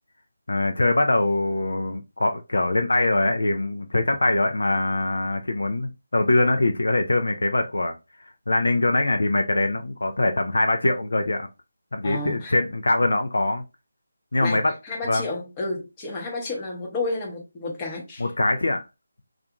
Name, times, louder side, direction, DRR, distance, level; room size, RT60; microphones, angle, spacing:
voice 1, 0.5-7.9 8.5-11.5 11.9-13.6 14.3-14.7 15.1-15.3 18.2-18.8, left 2 dB, 70° left, 0.4 m, -23 dB
voice 2, 12.0-12.5 14.4-18.3, left 2 dB, 15° left, 0.8 m, -31 dB
2.4 x 2.4 x 2.8 m
figure-of-eight pair, 160°, 0 cm